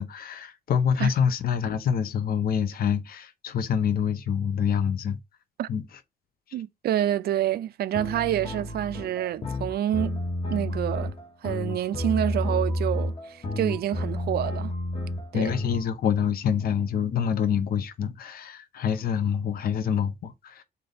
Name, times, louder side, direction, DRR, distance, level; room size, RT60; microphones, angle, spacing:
voice 1, 0.0-5.2 5.7-5.8 15.3-20.6, left 7 dB, 65° left, 0.7 m, -26 dB
voice 2, 6.5-10.2 10.5-11.1 11.4-14.7 15.3-15.5, right 11 dB, 70° right, 0.4 m, -28 dB
sound 1, 7.9-15.8, left 1 dB, 35° left, 1.1 m, -30 dB
3.9 x 3.4 x 3.9 m
cardioid pair, 120°, 17 cm